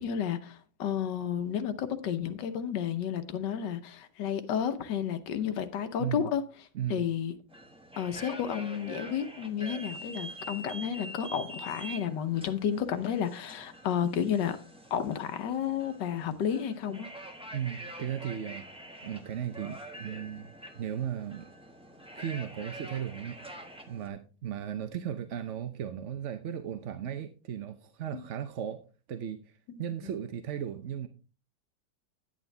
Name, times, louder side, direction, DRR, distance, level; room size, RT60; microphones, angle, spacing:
voice 1, 0.0-6.4 6.9-7.3 8.0-14.6 14.9-17.1 28.1-28.2 29.7-29.8, left 8 dB, 90° left, 1.5 m, -31 dB
sound 1, 7.5-24.1, right 1 dB, 5° right, 1.1 m, -45 dB
voice 2, 17.5-21.5 22.2-28.8 29.1-31.1, right 9 dB, 55° right, 0.9 m, -36 dB
9.9 x 9.1 x 3.3 m
omnidirectional pair, 1.8 m